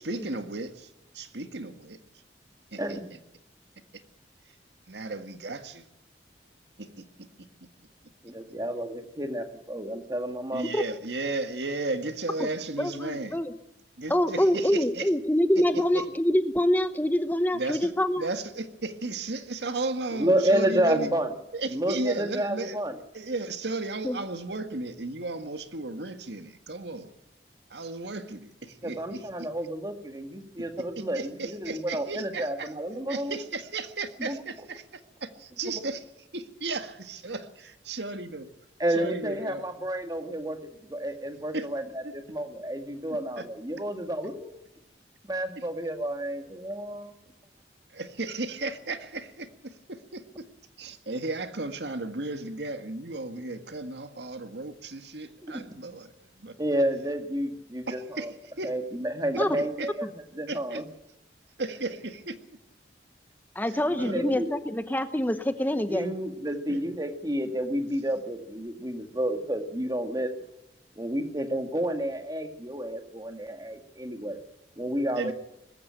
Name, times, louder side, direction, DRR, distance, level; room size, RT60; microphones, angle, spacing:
voice 1, 0.0-2.0 2.7-3.0 4.9-5.8 6.8-7.5 10.5-13.4 14.0-15.1 15.9-16.0 17.5-17.9 18.2-21.1 21.5-22.8 23.1-27.1 27.7-29.5 31.0-32.7 33.1-36.0 36.3-38.5 39.0-39.7 41.5-41.7 42.0-42.1 43.4-43.5 47.9-50.5 50.8-56.5 57.9-58.3 58.6-58.7 59.6-59.9 60.5-60.8 61.6-62.4 64.0-64.4 66.7-66.8 75.2-75.3, right 3 dB, 75° right, 8 dB, 1.8 m, -35 dB
voice 2, 2.8-3.1 8.2-10.7 20.1-21.3 21.7-23.0 28.8-33.4 34.2-34.4 38.8-40.6 40.8-44.6 45.3-47.1 55.4-55.6 56.6-58.3 58.6-60.8 63.9-64.6 65.8-70.3 71.0-74.4 74.8-75.3, right 1 dB, 20° right, 6 dB, 1.9 m, -30 dB
voice 3, 12.8-13.5 14.1-18.3 24.0-24.2 59.4-59.5 63.5-66.1, left 1 dB, 10° left, 10 dB, 0.9 m, -25 dB
20.0 x 15.5 x 9.0 m, 0.85 s
head